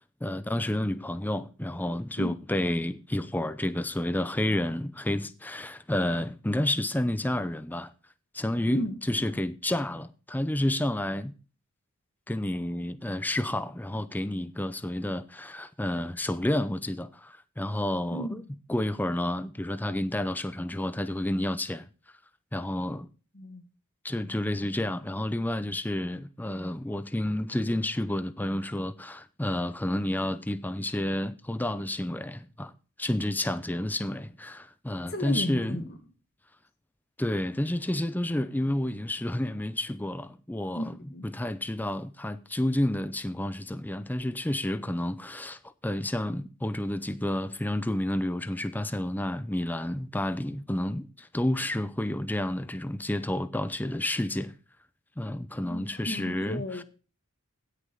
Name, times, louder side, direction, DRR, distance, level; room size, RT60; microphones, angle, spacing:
voice 1, 0.2-7.9 8.3-11.3 12.3-21.9 22.5-23.1 24.0-32.7 33.0-35.9 37.2-54.5 55.2-56.8, left 1 dB, 10° left, 0.6 m, -30 dB
voice 2, 23.4-23.7 35.1-35.9 40.8-40.9 41.1-41.3 55.6-56.8, equal, 45° left, 1.8 m, -34 dB
16.0 x 6.6 x 3.9 m
head